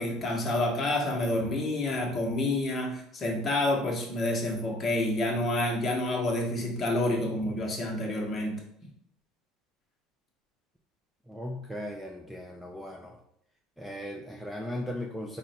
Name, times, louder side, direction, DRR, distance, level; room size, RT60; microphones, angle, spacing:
voice 1, 0.0-8.6, left 1 dB, 25° left, -1 dB, 0.9 m, -28 dB
voice 2, 11.3-13.2 13.8-15.4, left 1 dB, ahead, 0 dB, 0.3 m, -37 dB
3.8 x 2.1 x 4.0 m, 0.73 s
cardioid pair, 135°, 0 cm